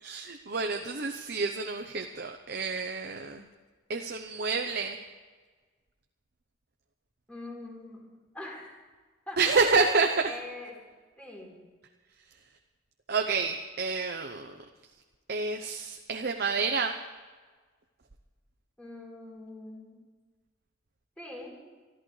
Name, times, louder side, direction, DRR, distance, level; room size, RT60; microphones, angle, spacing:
voice 1, 0.0-3.4 3.9-5.0 9.4-10.3 13.1-14.5 15.3-16.9, right 4 dB, 50° right, 4 dB, 0.8 m, -28 dB
voice 2, 7.3-8.0 8.3-8.7 9.3-9.7 10.2-10.8 11.2-11.6 18.8-20.0 21.2-21.6, left 2 dB, 5° left, -2 dB, 3.6 m, -43 dB
25.0 x 14.0 x 3.3 m, 1.4 s
head